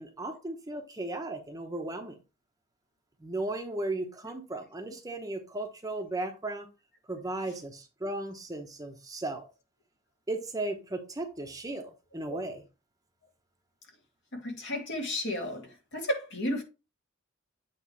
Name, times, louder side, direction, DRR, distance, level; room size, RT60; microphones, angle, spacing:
voice 1, 0.0-2.2 3.2-6.7 7.1-9.5 10.3-12.6, right 2 dB, 20° right, 1.0 m, -36 dB
voice 2, 14.3-16.6, left 1 dB, 60° left, 2.3 m, -33 dB
8.4 x 3.3 x 4.7 m
head